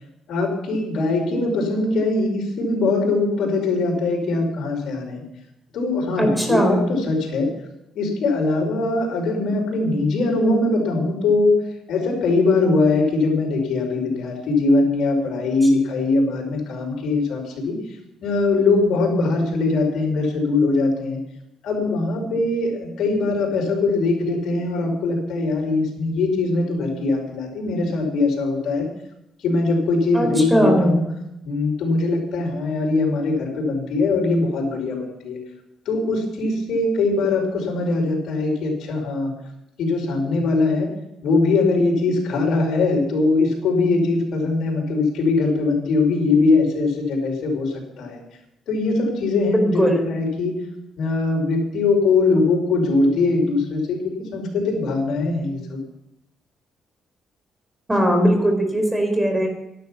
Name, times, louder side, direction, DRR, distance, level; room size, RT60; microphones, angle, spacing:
voice 1, 0.3-5.2 5.7-7.5 7.9-11.5 11.9-17.8 18.2-21.2 21.6-28.9 29.4-31.1 31.4-35.4 35.8-39.3 39.8-40.9 41.2-48.2 48.7-50.7 51.0-55.8, left 3 dB, 75° left, 1 dB, 5.0 m, -21 dB
voice 2, 6.2-6.9 30.1-30.9 49.5-50.1 57.9-59.5, equal, 10° right, 4 dB, 4.3 m, -19 dB
13.0 x 12.0 x 5.9 m, 0.83 s
cardioid pair, 90°, 0 cm